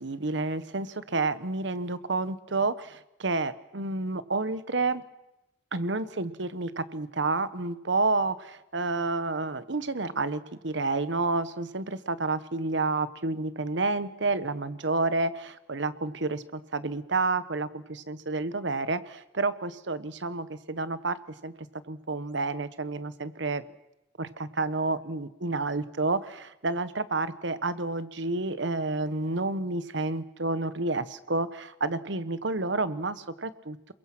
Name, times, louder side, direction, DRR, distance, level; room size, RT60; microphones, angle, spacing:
voice 1, 0.0-5.0 5.7-21.2 21.4-21.5 21.9-23.6 24.2-33.9, right 3 dB, 70° right, 13 dB, 1.2 m, -30 dB
28.0 x 22.5 x 6.1 m, 0.90 s
head